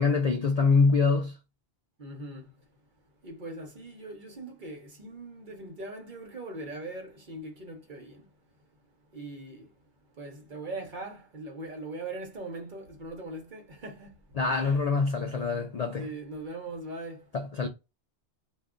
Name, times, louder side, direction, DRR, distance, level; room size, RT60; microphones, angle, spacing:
voice 1, 0.0-1.4 14.4-16.1 17.3-17.7, left 4 dB, 55° left, 0.4 m, -25 dB
voice 2, 2.0-2.5 3.2-8.3 9.1-9.7 10.2-14.1 14.5-14.8 16.0-17.2, right 2 dB, 50° right, 0.9 m, -40 dB
2.4 x 2.3 x 3.6 m
omnidirectional pair, 1.1 m